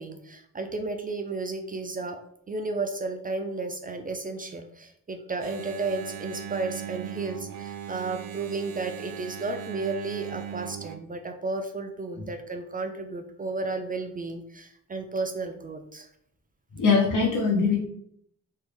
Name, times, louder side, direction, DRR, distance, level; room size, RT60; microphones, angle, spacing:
voice 1, 0.0-2.2 2.5-16.1, right 3 dB, 25° right, 5 dB, 0.3 m, -33 dB
Engine, 5.4-11.0, right 9 dB, 90° right, 0.5 m, -38 dB
voice 2, 16.7-17.9, left 4 dB, 70° left, -1 dB, 1.3 m, -22 dB
3.1 x 2.5 x 3.4 m, 0.70 s
cardioid pair, 85°, 32 cm